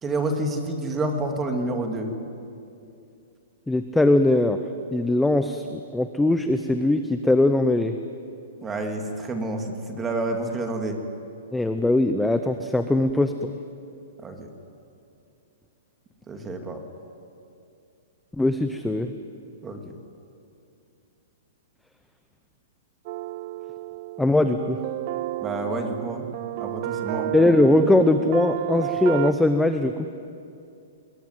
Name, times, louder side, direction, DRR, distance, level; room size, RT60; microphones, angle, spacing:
voice 1, 0.0-2.1 8.6-11.0 14.2-14.5 16.3-16.8 19.6-19.8 25.4-26.3 26.6-27.3, right 2 dB, 10° right, 4 dB, 2.3 m, -29 dB
voice 2, 3.7-4.6 4.9-7.9 11.5-13.6 18.4-19.1 24.2-24.8 27.3-30.1, left 2 dB, 5° left, 8 dB, 0.7 m, -21 dB
sound 1, 23.1-29.3, right 15 dB, 35° right, 0.6 m, -31 dB
25.5 x 21.5 x 9.5 m, 2.5 s
hypercardioid pair, 165°, 0 cm